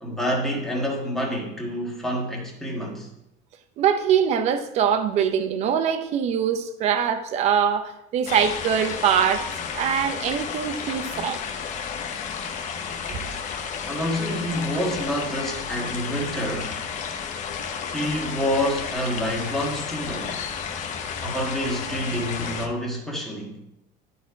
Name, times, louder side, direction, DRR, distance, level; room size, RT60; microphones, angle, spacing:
voice 1, 0.0-3.1 13.9-16.8 17.9-20.4 21.2-23.6, equal, ahead, -3 dB, 1.5 m, -28 dB
voice 2, 3.8-11.4 13.1-13.2, right 8 dB, 40° right, 9 dB, 0.7 m, -23 dB
sound 1, 8.3-22.7, left 6 dB, 45° left, 0.9 m, -32 dB
12.0 x 4.2 x 4.7 m, 0.85 s
cardioid pair, 180°, 18 cm